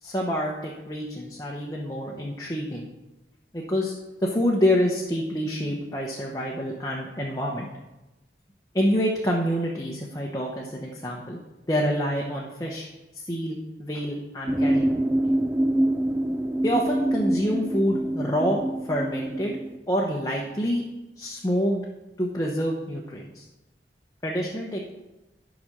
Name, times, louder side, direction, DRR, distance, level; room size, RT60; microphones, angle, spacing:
voice 1, 0.0-2.9 3.5-3.9 4.2-7.7 8.7-11.4 11.7-12.9 13.1-15.0 16.6-19.6 19.9-20.8 21.2-21.8 22.2-23.4 24.2-24.9, equal, 20° left, -2 dB, 0.9 m, -27 dB
sound 1, 14.5-19.8, right 1 dB, 10° right, 0.3 m, -25 dB
10.5 x 5.1 x 6.6 m, 1.0 s
head